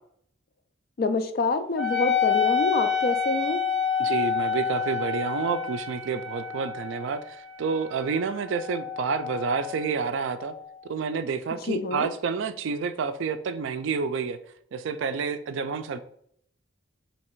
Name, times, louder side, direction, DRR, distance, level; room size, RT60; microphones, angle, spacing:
voice 1, 1.0-3.6 11.6-12.1, left 3 dB, 50° left, 9 dB, 0.3 m, -27 dB
Wind instrument woodwind instrument, 1.8-10.7, left 7 dB, ahead, 0.7 m, -29 dB
voice 2, 4.0-10.5 10.9-14.4 14.7-16.0, right 5 dB, 70° right, 11 dB, 0.3 m, -29 dB
3.2 x 2.8 x 4.5 m, 0.66 s
head